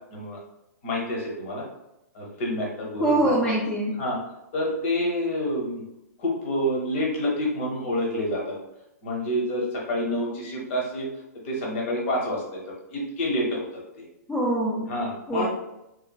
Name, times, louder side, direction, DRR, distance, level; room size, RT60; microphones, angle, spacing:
voice 1, 0.8-1.6 2.1-3.3 4.0-4.2 4.5-5.8 6.2-8.6 9.0-11.1 11.4-14.1 14.9-15.5, left 1 dB, 45° left, -2 dB, 1.0 m, -28 dB
voice 2, 3.0-3.9 14.3-14.9 15.3-15.5, right 1 dB, 10° left, -7 dB, 0.5 m, -23 dB
3.0 x 2.4 x 2.3 m, 0.87 s
figure-of-eight pair, 115°, 9 cm